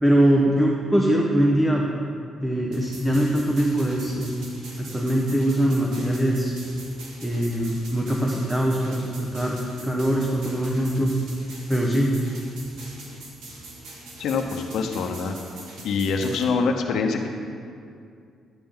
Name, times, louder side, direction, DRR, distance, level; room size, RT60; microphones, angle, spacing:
voice 1, 0.0-1.9 2.4-4.3 4.8-6.5 7.2-11.1 11.7-12.1, right 1 dB, 5° right, -2 dB, 1.1 m, -22 dB
sound 1, 2.7-16.4, right 2 dB, 80° right, 2.0 m, -43 dB
voice 2, 14.2-15.3 15.8-17.3, left 4 dB, 75° left, 4 dB, 0.9 m, -24 dB
11.5 x 8.9 x 3.8 m, 2.3 s
cardioid pair, 90°, 0 cm